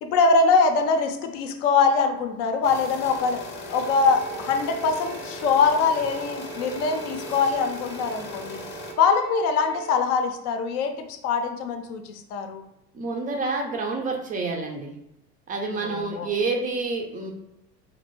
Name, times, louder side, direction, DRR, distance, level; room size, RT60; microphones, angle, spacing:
voice 1, 0.0-3.4 3.7-8.6 9.0-12.6 15.8-16.3, left 4 dB, 65° left, 6 dB, 0.6 m, -23 dB
sound 1, 2.6-8.9, left 3 dB, 20° left, 0.7 m, -38 dB
Bowed string instrument, 3.7-10.0, right 11 dB, 80° right, 0.7 m, -42 dB
voice 2, 12.9-14.9 15.5-17.3, right 3 dB, 20° right, 2 dB, 0.3 m, -28 dB
2.7 x 2.5 x 3.0 m, 0.84 s
hypercardioid pair, 70°, 50 cm